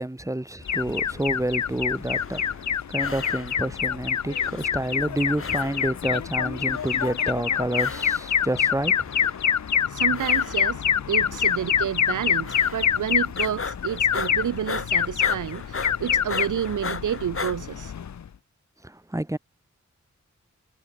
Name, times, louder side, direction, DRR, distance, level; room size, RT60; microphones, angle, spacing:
voice 1, 0.0-9.1 18.8-19.4, right 1 dB, 10° right, 1.4 m, -29 dB
Alarm, 0.7-18.3, left 8 dB, 65° left, 0.7 m, -26 dB
sound 1, 2.0-2.7 3.0-3.8 4.4-5.1 5.4-6.1 6.7-7.3 7.7-8.4 9.0-9.6 10.1-10.9 11.3-11.8 12.5-13.1 13.4-17.6, left 4 dB, 45° left, 1.4 m, -36 dB
voice 2, 9.9-17.9, right 9 dB, 90° right, 0.7 m, -30 dB
cardioid pair, 45°, 30 cm